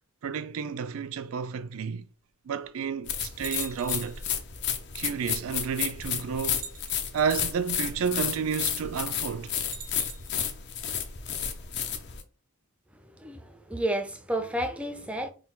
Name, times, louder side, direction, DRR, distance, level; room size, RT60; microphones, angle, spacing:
voice 1, 0.2-2.1 2.5-4.2 4.9-6.7 7.1-9.6, right 6 dB, 70° right, 0.4 m, -31 dB
sound 1, 3.0-12.2, left 8 dB, 50° left, 0.6 m, -32 dB
sound 2, 3.4-4.3 5.4-5.5 6.4-7.3 9.6-10.5, right 7 dB, 85° right, 0.9 m, -44 dB
voice 2, 13.0-15.3, right 1 dB, 5° right, 0.4 m, -31 dB
3.8 x 2.3 x 4.3 m
head